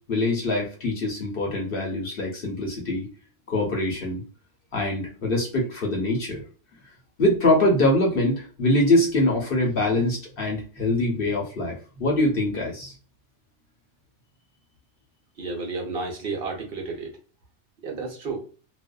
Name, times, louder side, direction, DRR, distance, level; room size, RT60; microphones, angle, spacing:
voice 1, 0.1-3.1 3.5-4.2 4.7-6.4 7.2-12.9, left 1 dB, 55° left, -1 dB, 1.0 m, -23 dB
voice 2, 15.4-17.1 17.8-18.4, right 3 dB, 60° right, 0 dB, 0.9 m, -31 dB
2.5 x 2.3 x 2.2 m, 0.37 s
omnidirectional pair, 1.2 m